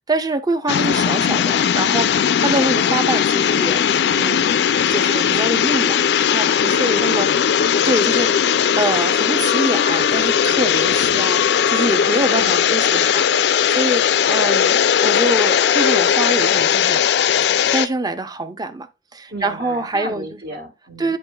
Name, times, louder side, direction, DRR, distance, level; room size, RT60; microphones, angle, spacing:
voice 1, 0.1-4.6 4.9-7.3 7.8-17.1 17.7-20.3 21.0-21.2, right 2 dB, 20° right, 0.5 m, -25 dB
sound 1, 0.7-17.9, left 8 dB, 65° left, 0.3 m, -18 dB
voice 2, 6.9-7.7 12.3-13.1 19.3-21.1, right 1 dB, 60° right, 1.6 m, -34 dB
10.5 x 4.4 x 2.2 m
head